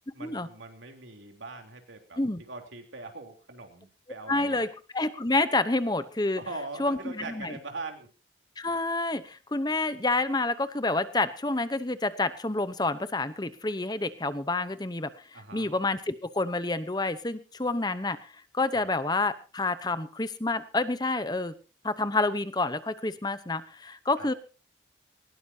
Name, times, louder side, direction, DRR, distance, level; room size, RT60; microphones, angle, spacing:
voice 1, 0.1-2.2 2.5-4.7 6.4-8.1 15.3-15.7 18.7-18.9 24.2-24.3, right 3 dB, 85° right, 4 dB, 3.5 m, -41 dB
voice 2, 4.3-4.7 4.9-6.4 6.8-7.5 8.6-21.5 21.8-24.3, left 2 dB, 20° left, 12 dB, 0.9 m, -28 dB
20.0 x 19.0 x 2.8 m, 0.34 s
head